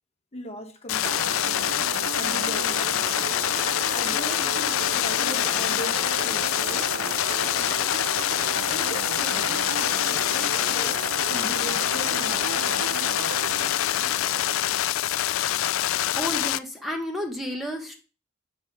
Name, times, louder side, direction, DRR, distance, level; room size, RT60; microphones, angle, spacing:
voice 1, 0.3-1.7 2.1-3.1 3.9-7.0 8.7-13.0, left 1 dB, 30° left, 1.1 m, -39 dB
sound 1, 0.9-16.6, left 13 dB, 70° left, 0.3 m, -25 dB
sound 2, 1.0-14.8, right 6 dB, 75° right, 0.5 m, -35 dB
voice 2, 16.1-18.0, equal, ahead, 0.9 m, -31 dB
7.5 x 4.7 x 5.8 m
head